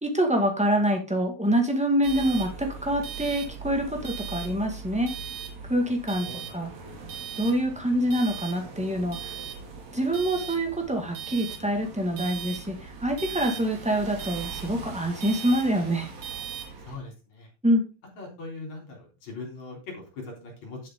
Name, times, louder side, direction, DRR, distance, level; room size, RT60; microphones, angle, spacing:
voice 1, 0.0-5.1 5.7-6.7 7.4-9.4 9.9-16.1 17.6-17.8, right 1 dB, 5° right, 3 dB, 0.5 m, -26 dB
sound 1, 2.0-17.0, right 6 dB, 75° right, 4.1 m, -39 dB
voice 2, 6.2-6.6 6.8-7.1 16.8-17.5 18.2-20.8, left 3 dB, 55° left, 1 dB, 4.8 m, -41 dB
10.5 x 7.7 x 3.8 m, 0.30 s
omnidirectional pair, 4.0 m